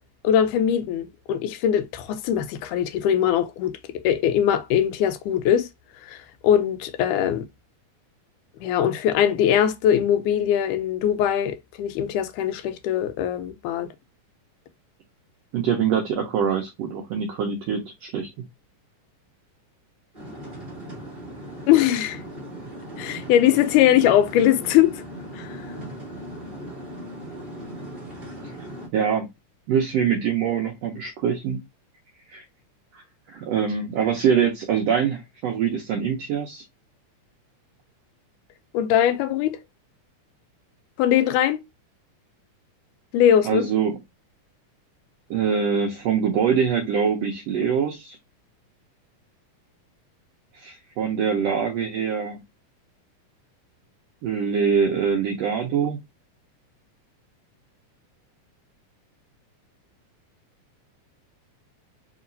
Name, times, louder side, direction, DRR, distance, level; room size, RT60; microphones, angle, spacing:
voice 1, 0.2-3.7 4.0-5.7 6.1-6.2 6.4-7.5 8.6-13.9 21.7-22.2 23.0-24.9 25.3-25.6 38.7-39.6 41.0-41.6 43.1-43.7, left 10 dB, 80° left, 2.1 m, -21 dB
voice 2, 15.5-18.5 28.9-29.3 29.7-31.6 32.3-32.4 32.9-33.0 33.3-36.6 43.4-44.0 45.3-48.2 50.5-52.4 54.2-56.0, right 7 dB, 80° right, 1.5 m, -24 dB
sound 1, 20.1-28.9, right 1 dB, 30° right, 0.9 m, -38 dB
4.6 x 2.9 x 2.6 m
omnidirectional pair, 3.6 m